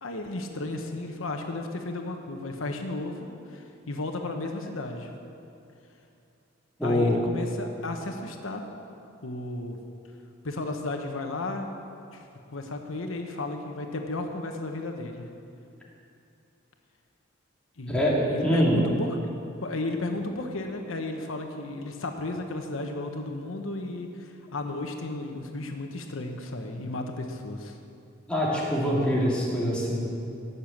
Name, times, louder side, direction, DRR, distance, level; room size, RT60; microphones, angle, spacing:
voice 1, 0.0-5.1 6.8-8.6 9.2-9.8 10.4-11.7 12.1-15.3 17.8-19.2 19.6-27.7, left 2 dB, 85° left, 4 dB, 1.1 m, -34 dB
voice 2, 6.8-7.2 17.9-18.2 18.4-18.8 28.3-30.0, equal, 5° left, -6 dB, 2.8 m, -24 dB
18.5 x 6.9 x 7.3 m, 2.6 s
head